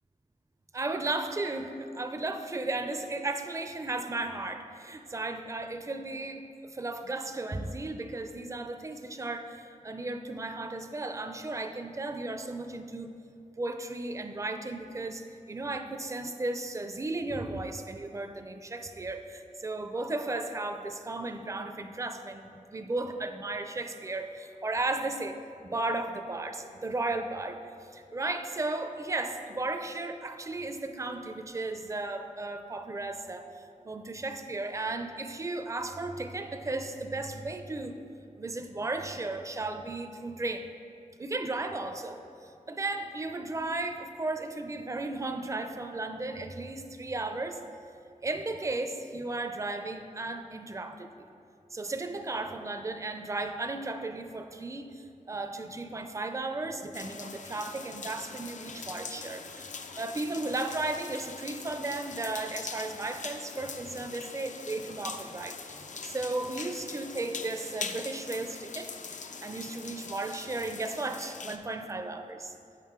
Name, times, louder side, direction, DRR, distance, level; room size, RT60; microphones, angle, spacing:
voice 1, 0.7-13.1 13.6-33.5 33.8-38.0 38.4-40.7 41.2-47.6 48.2-51.3 51.7-59.7 60.0-72.5, right 2 dB, 20° right, 7 dB, 0.4 m, -35 dB
sound 1, 56.9-71.6, left 5 dB, 65° left, 0.4 m, -42 dB
7.3 x 5.3 x 3.7 m, 2.5 s
wide cardioid pair, 60°, 14 cm